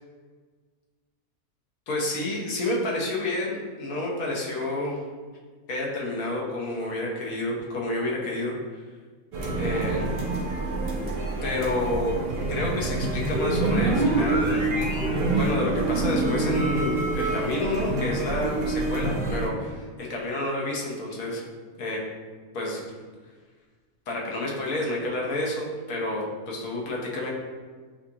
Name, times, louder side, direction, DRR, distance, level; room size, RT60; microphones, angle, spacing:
voice 1, 1.9-5.0 5.7-8.5 9.6-10.1 11.4-12.2 12.5-14.6 15.4-21.4 21.8-22.1 22.5-22.8 24.1-27.3, left 1 dB, 75° left, -3 dB, 1.3 m, -29 dB
sound 1, 9.3-19.5, right 2 dB, 55° right, 0.6 m, -26 dB
6.3 x 2.4 x 2.8 m, 1.5 s
omnidirectional pair, 1.5 m